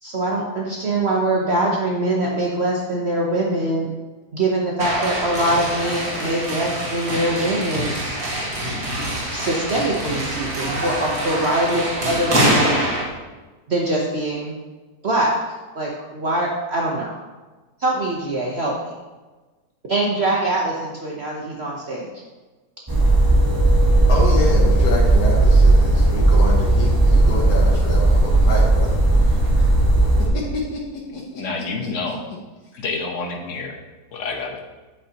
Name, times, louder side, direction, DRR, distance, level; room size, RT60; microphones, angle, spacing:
voice 1, 0.0-3.9 4.3-7.9 9.3-12.8 13.7-14.5 15.0-17.2 17.8-18.7 19.9-22.1, right 1 dB, 45° right, -3 dB, 1.1 m, -23 dB
sound 1, 4.8-13.0, right 1 dB, 65° right, 2.1 m, -24 dB
sound 2, 22.9-30.3, right 2 dB, 15° right, 1.2 m, -15 dB
voice 2, 24.1-29.7 30.2-31.9, left 2 dB, 75° left, -3 dB, 1.7 m, -28 dB
voice 3, 31.4-32.2 32.8-33.8 34.1-34.6, left 4 dB, 55° left, 3 dB, 1.2 m, -28 dB
8.5 x 8.4 x 2.9 m, 1.3 s
omnidirectional pair, 1.7 m